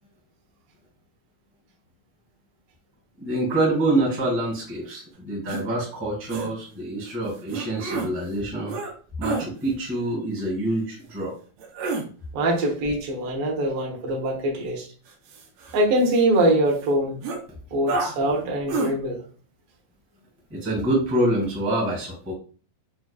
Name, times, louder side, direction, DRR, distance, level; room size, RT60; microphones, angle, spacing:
voice 1, 3.2-8.7 9.2-11.3 20.5-22.3, right 1 dB, 10° right, -3 dB, 0.6 m, -26 dB
sound 1, 5.5-5.6 6.3-6.5 7.5-8.1 8.7-8.9 9.2-9.5 11.6-12.1 15.1-16.4 16.8-16.9 17.2-17.4 17.9-18.2 18.7-18.9, right 3 dB, 85° right, 2.3 m, -29 dB
voice 2, 12.3-14.9 15.7-17.2 17.7-19.2, right 1 dB, 65° right, -2 dB, 1.5 m, -23 dB
6.0 x 2.3 x 2.3 m, 0.40 s
omnidirectional pair, 4.0 m